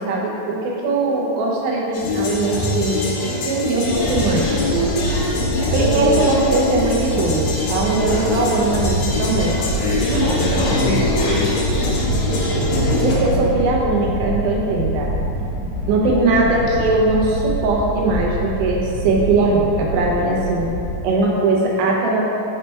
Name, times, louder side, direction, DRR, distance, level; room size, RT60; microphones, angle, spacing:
voice 1, 0.0-3.1 3.5-4.5 5.7-7.4 7.7-9.6 10.1-10.3 10.9-11.0 13.0-15.1 15.9-20.7 21.0-22.2, right 3 dB, 80° right, -2 dB, 2.6 m, -20 dB
sound 1, 1.9-13.1, left 2 dB, 70° left, 1.9 m, -23 dB
sound 2, 3.9-21.0, equal, 85° left, 2.5 m, -26 dB
voice 2, 9.8-11.6 12.5-13.4, left 1 dB, 50° left, -14 dB, 1.2 m, -24 dB
6.5 x 3.3 x 4.4 m, 2.8 s
omnidirectional pair, 4.3 m